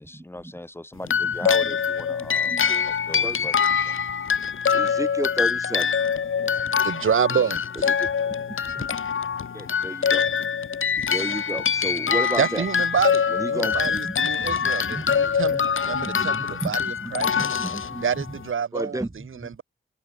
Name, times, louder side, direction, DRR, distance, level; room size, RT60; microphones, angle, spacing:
voice 1, 0.0-2.6 2.8-3.5 3.8-4.0, left 1 dB, 10° left, 6.1 m, -38 dB
sound 1, 1.0-18.5, left 7 dB, 85° left, 4.6 m, -24 dB
voice 2, 2.4-2.9 3.2-3.5 4.7-5.9 7.4-7.5 7.8-8.4 8.7-8.8 9.5-10.3 11.1-12.7 13.3-18.4 18.7-19.5, right 2 dB, 15° right, 3.7 m, -33 dB
voice 3, 6.8-7.9 12.4-17.3 18.0-19.0, right 7 dB, 90° right, 3.2 m, -27 dB
open air
wide cardioid pair, 135°, 20 cm